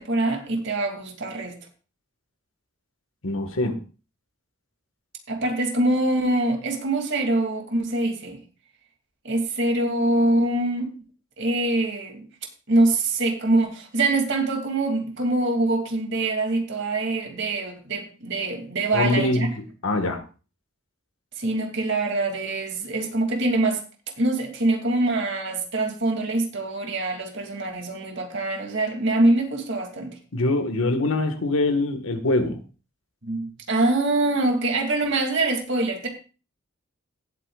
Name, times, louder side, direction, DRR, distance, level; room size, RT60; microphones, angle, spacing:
voice 1, 0.0-1.6 5.3-8.4 9.2-10.9 11.4-12.3 12.7-19.5 21.4-23.8 24.2-30.2 33.2-36.1, right 2 dB, 60° right, 2.7 m, -24 dB
voice 2, 3.2-3.8 18.9-20.2 30.3-32.6, left 2 dB, 85° left, 1.6 m, -24 dB
17.5 x 8.3 x 2.4 m
head